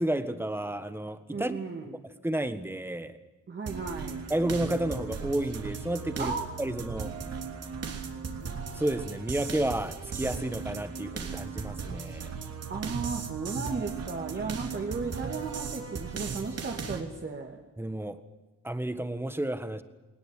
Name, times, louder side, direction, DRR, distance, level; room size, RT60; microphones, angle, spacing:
voice 1, 0.0-1.6 2.2-3.2 4.3-7.1 8.7-12.3 17.8-18.2 18.6-19.8, right 1 dB, 5° right, 11 dB, 1.6 m, -31 dB
voice 2, 1.3-2.0 3.5-4.3 6.2-6.4 12.7-17.6, right 4 dB, 35° right, 1 dB, 2.6 m, -35 dB
sound 1, 3.7-17.0, right 5 dB, 50° right, 3.2 m, -37 dB
20.5 x 20.0 x 9.4 m, 1.2 s
cardioid pair, 125°, 31 cm